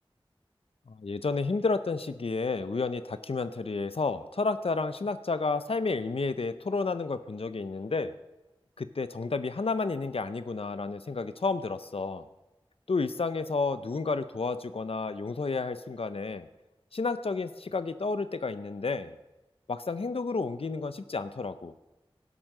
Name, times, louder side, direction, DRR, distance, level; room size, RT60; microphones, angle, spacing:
voice 1, 0.9-8.1 8.8-12.2 12.9-16.5 16.9-19.1 19.7-21.7, left 4 dB, 80° left, 12 dB, 0.6 m, -31 dB
12.0 x 11.0 x 6.6 m, 1.0 s
wide cardioid pair, 45°, 10 cm